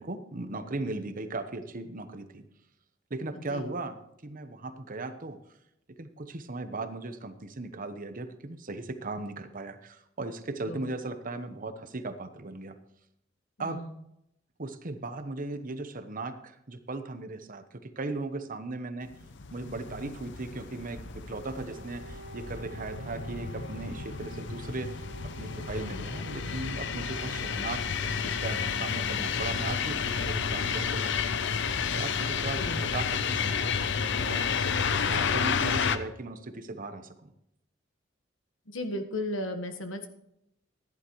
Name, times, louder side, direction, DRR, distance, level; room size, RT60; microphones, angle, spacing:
voice 1, 0.0-2.4 3.1-5.4 6.0-12.8 13.6-13.8 14.6-19.1 19.5-25.0 25.4-34.5 35.1-37.3, right 2 dB, 45° right, 9 dB, 1.0 m, -38 dB
voice 2, 3.3-3.7 10.7-10.9 13.6-13.9 32.6-32.8 38.7-40.1, left 1 dB, 85° left, 7 dB, 1.4 m, -35 dB
sound 1, 19.2-36.0, left 6 dB, 65° left, 0.7 m, -31 dB
Wind instrument woodwind instrument, 21.6-29.3, right 2 dB, 20° right, 1.7 m, -50 dB
14.5 x 11.0 x 3.2 m, 0.80 s
head